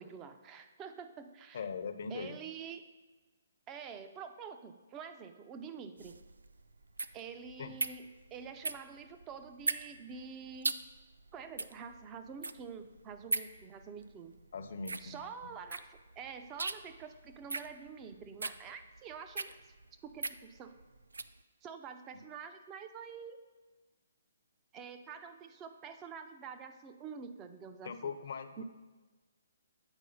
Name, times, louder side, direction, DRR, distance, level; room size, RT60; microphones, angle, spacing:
voice 1, 0.0-1.6 2.1-2.8 3.7-6.1 7.1-10.7 11.3-14.3 15.0-19.6 20.0-20.8 21.6-23.4 24.7-28.1 28.6-28.7, right 6 dB, 20° right, 8 dB, 0.5 m, -47 dB
voice 2, 1.5-2.4 7.6-7.7 14.5-15.5 27.8-28.6, left 5 dB, 60° left, 9 dB, 0.7 m, -41 dB
sound 1, 6.0-21.4, right 3 dB, 90° right, 0.4 m, -40 dB
8.9 x 4.6 x 5.5 m, 1.3 s
hypercardioid pair, 145°, 0 cm